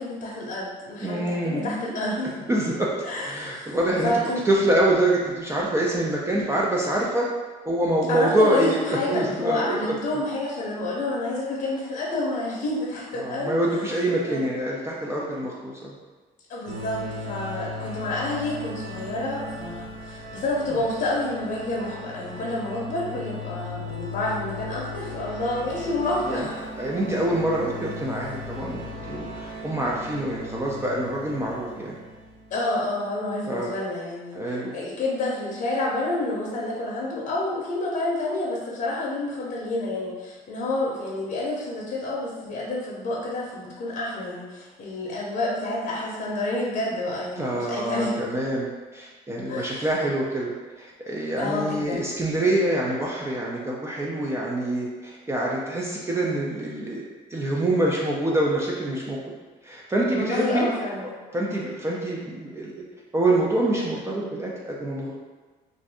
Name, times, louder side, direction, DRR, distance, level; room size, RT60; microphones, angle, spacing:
voice 1, 0.0-2.3 3.0-4.5 8.1-13.5 14.3-14.4 16.5-26.6 28.1-28.3 32.5-34.4 34.7-48.2 49.4-49.9 51.4-52.1 60.1-61.0, left 2 dB, 50° left, -5 dB, 0.7 m, -29 dB
voice 2, 1.0-1.9 2.5-2.9 3.2-4.1 4.4-7.3 7.7-10.0 13.2-15.9 23.1-23.2 26.3-26.5 26.8-32.0 33.5-33.7 34.3-34.8 47.4-50.5 50.8-57.0 57.3-59.2 59.6-60.7 61.3-62.8 63.1-65.2, right 1 dB, 15° right, -4 dB, 0.4 m, -25 dB
sound 1, 16.7-32.6, left 1 dB, 50° right, 0.8 m, -37 dB
2.5 x 2.5 x 3.4 m, 1.3 s
cardioid pair, 110°, 17 cm